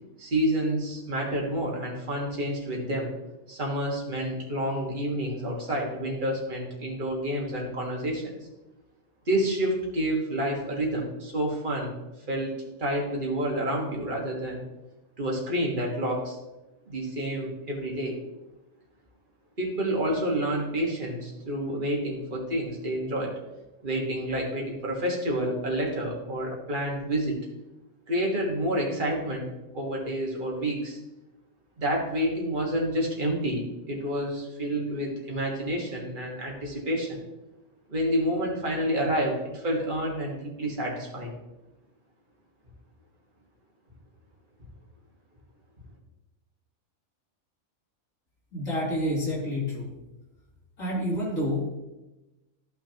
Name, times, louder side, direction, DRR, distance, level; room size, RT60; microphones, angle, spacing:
voice 1, 0.2-3.1 3.5-8.4 9.3-11.9 12.3-14.6 15.2-16.4 16.9-18.2 19.6-23.3 23.8-27.3 28.1-31.0 31.8-37.2 37.9-41.3, right 1 dB, 40° right, -1 dB, 1.8 m, -29 dB
voice 2, 48.5-49.9 50.8-51.7, left 1 dB, 75° left, -6 dB, 3.2 m, -28 dB
13.5 x 6.0 x 2.9 m, 1.0 s
omnidirectional pair, 1.4 m